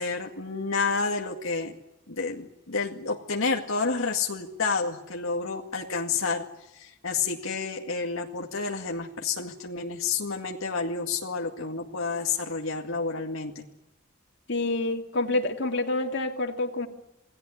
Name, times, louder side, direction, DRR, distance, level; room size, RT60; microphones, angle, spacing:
voice 1, 0.0-1.8 2.1-6.4 6.7-13.7, left 4 dB, 80° left, 1 dB, 2.2 m, -30 dB
voice 2, 14.5-16.9, left 2 dB, 60° left, 4 dB, 2.6 m, -27 dB
28.0 x 19.0 x 9.9 m, 0.92 s
head